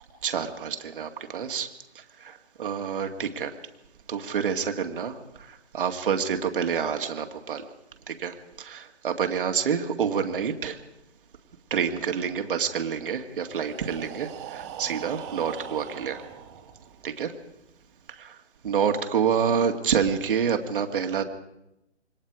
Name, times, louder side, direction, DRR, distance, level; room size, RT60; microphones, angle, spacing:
voice 1, 0.2-1.7 2.2-3.5 4.1-5.1 5.7-7.7 8.1-10.8 11.7-16.2 17.0-17.3 18.2-18.4 18.6-21.2, right 7 dB, 50° right, 5 dB, 2.2 m, -27 dB
Breathing, 13.3-17.2, right 9 dB, 25° right, 2.1 m, -41 dB
27.5 x 24.0 x 4.9 m, 0.87 s
figure-of-eight pair, 145°, 35 cm